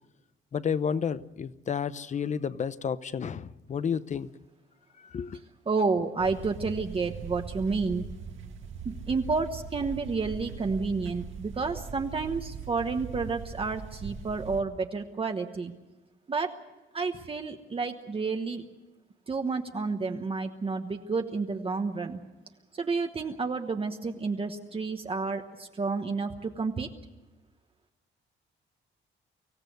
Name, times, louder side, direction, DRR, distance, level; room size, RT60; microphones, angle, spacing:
voice 1, 0.5-4.3 5.1-5.4, left 7 dB, 35° left, 0.7 m, -31 dB
voice 2, 5.7-8.1 8.8-15.7 16.3-16.5 16.9-18.6 19.3-22.2 22.8-26.9, right 4 dB, 25° right, 1.1 m, -30 dB
sound 1, 6.2-14.6, right 6 dB, 75° right, 1.9 m, -40 dB
25.0 x 16.5 x 7.9 m
cardioid pair, 155°, 20 cm